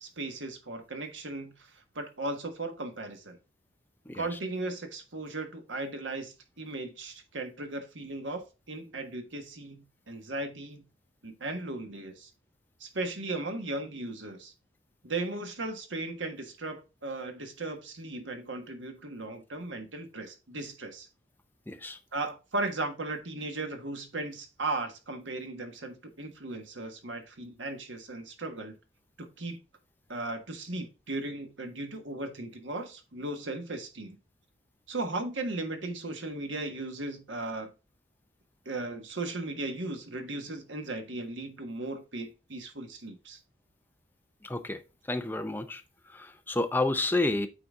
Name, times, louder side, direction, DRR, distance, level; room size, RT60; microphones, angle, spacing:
voice 1, 0.0-1.7 1.9-3.4 4.1-10.8 11.2-12.3 12.8-14.5 15.0-21.1 22.1-28.7 29.2-29.6 30.1-34.2 34.9-37.7 38.6-43.4, right 2 dB, 85° right, 1.5 m, -37 dB
voice 2, 21.7-22.0 44.4-44.8 45.1-45.8 46.1-47.5, left 2 dB, 10° left, 0.6 m, -30 dB
8.7 x 3.9 x 3.6 m
head